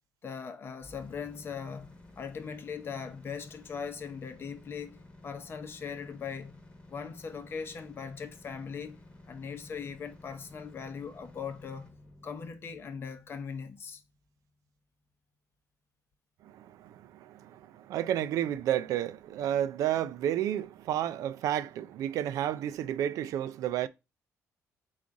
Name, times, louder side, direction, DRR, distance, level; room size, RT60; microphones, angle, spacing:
voice 1, 0.2-6.6 6.9-9.0 9.3-11.9 12.2-14.0, left 6 dB, 40° left, 0.7 m, -40 dB
sound 1, 0.8-14.7, left 2 dB, 20° left, 1.1 m, -54 dB
voice 2, 16.4-23.9, right 11 dB, 75° right, 0.3 m, -31 dB
3.9 x 2.4 x 4.5 m
cardioid pair, 95°, 6 cm